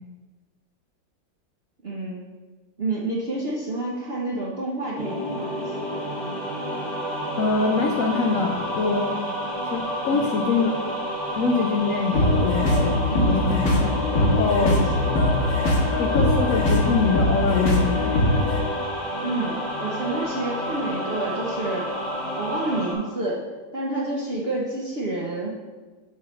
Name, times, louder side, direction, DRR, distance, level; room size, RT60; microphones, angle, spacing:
voice 1, 1.8-2.2 2.8-5.6 10.1-10.3 13.1-13.4 14.6-14.8 15.2-15.3 19.2-21.9 22.3-23.5 23.7-25.5, right 2 dB, 55° right, -4 dB, 0.6 m, -29 dB
sound 1, 4.9-22.9, equal, 25° left, 1.3 m, -30 dB
voice 2, 7.4-9.2 9.7-10.7 11.4-13.9 14.2-14.8 16.0-18.6, left 4 dB, 80° left, 3 dB, 0.7 m, -24 dB
sound 2, 12.1-18.6, left 1 dB, 50° left, 1.4 m, -22 dB
8.3 x 3.1 x 6.2 m, 1.3 s
omnidirectional pair, 2.1 m